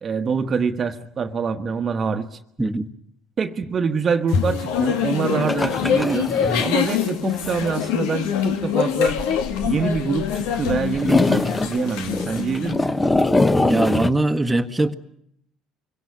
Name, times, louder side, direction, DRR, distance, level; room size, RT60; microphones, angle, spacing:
voice 1, 0.0-2.4 3.4-6.3 6.6-9.2 9.6-12.9, right 5 dB, 40° right, 1.3 m, -25 dB
voice 2, 2.6-2.9 13.6-14.9, right 2 dB, 10° right, 1.5 m, -21 dB
sound 1, 4.3-12.7, left 8 dB, 80° left, 2.0 m, -24 dB
sound 2, 5.4-6.8 7.1-7.2 7.5-7.6 9.1-10.4 10.7-14.1, left 2 dB, 15° left, 1.3 m, -22 dB
24.0 x 17.0 x 9.9 m
supercardioid pair, 80°, 0 cm